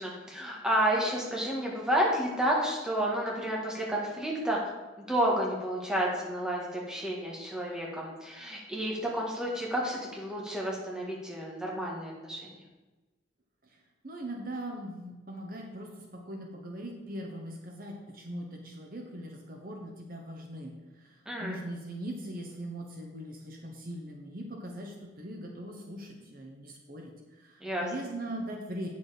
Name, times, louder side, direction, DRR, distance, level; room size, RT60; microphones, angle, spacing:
voice 1, 0.0-4.6 5.0-12.4 21.2-21.6 27.6-27.8, right 1 dB, 5° right, -3 dB, 1.7 m, -30 dB
voice 2, 14.0-28.9, right 1 dB, 50° right, 1 dB, 1.1 m, -41 dB
8.3 x 7.0 x 5.0 m, 1.2 s
head